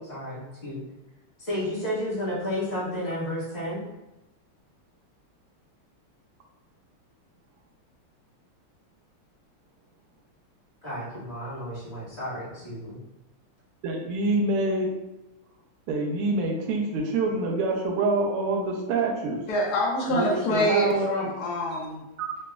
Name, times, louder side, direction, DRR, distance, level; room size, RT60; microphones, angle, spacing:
voice 1, 0.1-0.8 1.4-3.8 10.8-13.0, equal, 35° left, -9 dB, 1.3 m, -32 dB
voice 2, 13.8-15.0 15.9-19.4 20.1-21.1 22.2-22.3, right 2 dB, 85° right, 0 dB, 1.6 m, -26 dB
voice 3, 19.5-22.1, equal, 75° left, -3 dB, 0.8 m, -26 dB
3.8 x 3.1 x 2.3 m, 0.96 s
omnidirectional pair, 2.4 m